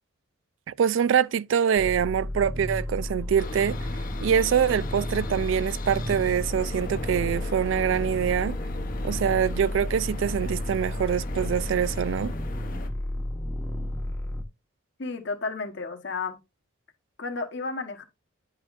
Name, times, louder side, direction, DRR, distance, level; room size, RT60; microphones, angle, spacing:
voice 1, 0.7-3.8 4.2-8.6 9.0-12.3, right 8 dB, 65° right, 0.3 m, -24 dB
sound 1, 1.8-14.4, left 1 dB, 15° left, 1.0 m, -32 dB
sound 2, 3.4-12.9, left 2 dB, 45° left, 0.9 m, -38 dB
voice 2, 15.0-16.4 17.2-18.0, left 4 dB, 60° left, 1.3 m, -32 dB
10.0 x 5.7 x 2.5 m
head